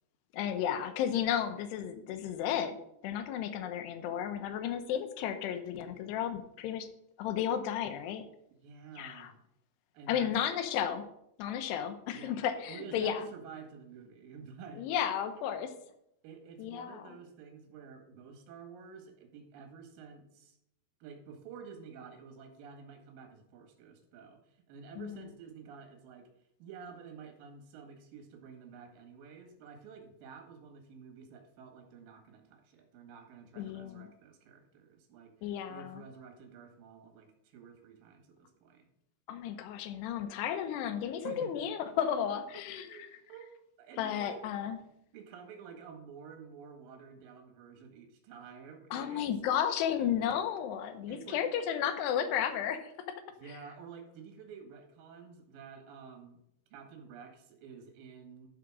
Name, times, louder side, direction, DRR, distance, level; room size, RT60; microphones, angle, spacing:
voice 1, 0.3-2.8 3.0-6.9 7.2-8.2 9.0-9.3 10.1-11.0 11.4-13.3 14.8-15.7 16.6-17.2 25.0-25.3 33.6-34.1 35.4-36.0 39.3-42.9 44.0-44.8 48.9-52.9, left 9 dB, 75° left, 9 dB, 2.8 m, -33 dB
voice 2, 8.6-9.4 9.9-10.3 12.1-12.3 12.7-14.9 16.2-20.6 21.0-26.3 26.6-38.9 41.2-41.5 42.5-44.4 45.1-49.3 51.1-51.4 53.4-56.4 56.7-58.5, right 6 dB, 60° right, 4 dB, 3.0 m, -50 dB
12.0 x 5.1 x 6.2 m, 0.78 s
omnidirectional pair, 5.2 m